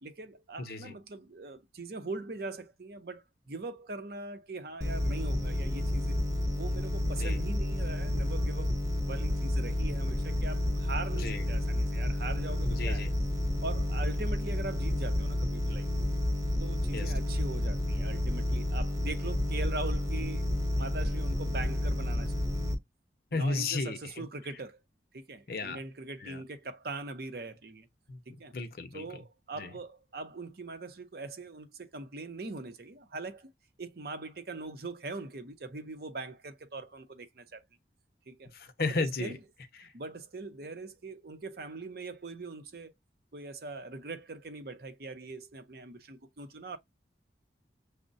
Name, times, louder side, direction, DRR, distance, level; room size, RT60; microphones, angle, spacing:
voice 1, 0.0-6.2 6.5-8.7 9.0-13.1 13.6-15.9 16.6-20.5 20.8-22.4 23.3-24.8 25.1-27.9 28.3-28.5 28.9-33.5 33.8-37.6 38.3-38.5 38.9-39.4 39.9-42.9 43.3-46.8, right 3 dB, 55° right, 0.7 m, -41 dB
voice 2, 0.6-0.9 7.2-7.4 11.1-11.5 12.7-13.1 16.9-17.1 23.3-24.2 25.5-25.8 26.2-26.4 28.1-28.2 28.5-29.0 29.6-29.7 38.5-39.4 39.8-39.9, left 3 dB, 55° left, 0.6 m, -34 dB
sound 1, 4.8-22.7, left 1 dB, 15° right, 0.8 m, -30 dB
6.2 x 2.1 x 2.6 m
head